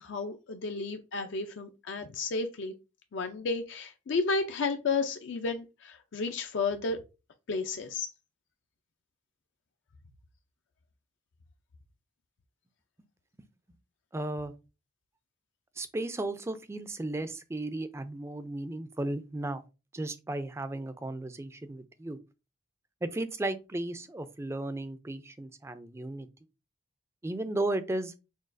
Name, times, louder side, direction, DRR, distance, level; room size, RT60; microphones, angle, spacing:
voice 1, 0.0-2.7 3.1-7.0 7.5-8.1, left 4 dB, 65° left, 0.4 m, -32 dB
voice 2, 14.1-14.5 15.8-19.7 19.9-22.2 23.0-26.3 27.2-28.1, right 2 dB, 15° right, 0.3 m, -35 dB
6.2 x 2.3 x 2.5 m
head